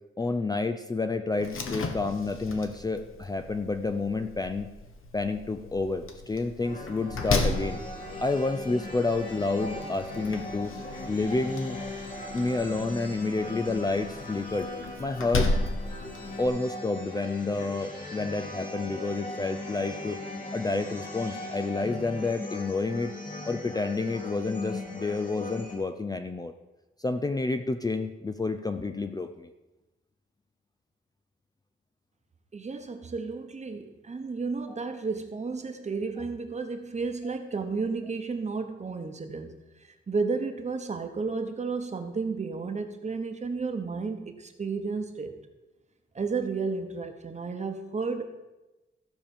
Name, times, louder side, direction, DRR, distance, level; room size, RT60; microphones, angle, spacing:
voice 1, 0.2-4.7 5.1-7.8 8.2-10.7 11.1-11.8 12.3-14.7 15.0-15.5 16.4-20.2 20.5-26.5 27.0-29.5, left 3 dB, 20° left, 8 dB, 0.4 m, -29 dB
Slam, 1.4-16.5, left 3 dB, 80° left, 1.4 m, -35 dB
sound 1, 6.6-25.8, left 2 dB, 40° left, 2.7 m, -39 dB
voice 2, 32.5-39.5 40.1-45.3 46.1-48.2, right 4 dB, 35° right, 6 dB, 1.1 m, -32 dB
15.0 x 5.1 x 7.2 m, 1.1 s
wide cardioid pair, 165°, 21 cm